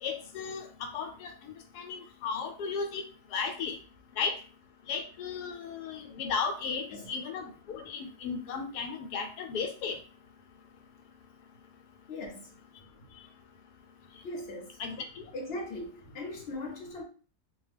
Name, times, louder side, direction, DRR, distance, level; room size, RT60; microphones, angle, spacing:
voice 1, 0.0-3.0 3.3-3.8 4.2-4.3 4.9-10.0 14.8-14.9, left 5 dB, 80° left, 1.1 m, -35 dB
voice 2, 12.1-12.5 14.2-14.8 15.3-17.0, left 2 dB, 50° left, 0.9 m, -39 dB
2.6 x 2.2 x 3.3 m
omnidirectional pair, 1.7 m